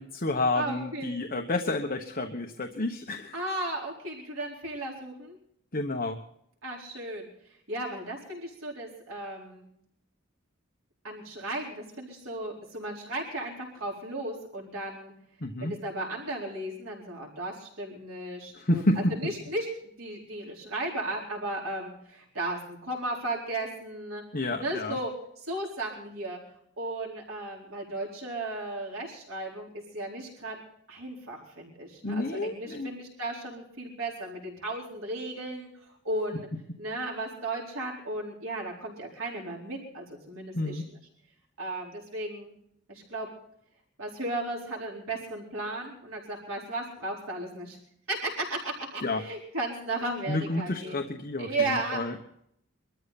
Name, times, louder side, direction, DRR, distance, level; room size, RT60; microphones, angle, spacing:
voice 1, 0.0-3.4 5.7-6.2 15.4-15.7 18.5-19.1 24.3-25.0 32.0-32.9 40.5-40.8 49.0-49.2 50.3-52.2, left 2 dB, 45° left, 4 dB, 1.2 m, -30 dB
voice 2, 0.5-1.1 3.3-5.4 6.6-7.3 7.7-9.7 11.0-15.1 15.6-24.2 24.6-25.1 25.4-26.4 26.8-30.6 30.9-35.7 36.0-36.5 36.8-40.8 41.6-42.5 42.9-43.3 44.0-47.8 48.1-51.0 51.4-52.2, right 2 dB, 85° right, -2 dB, 4.4 m, -35 dB
23.5 x 13.5 x 4.2 m, 0.71 s
head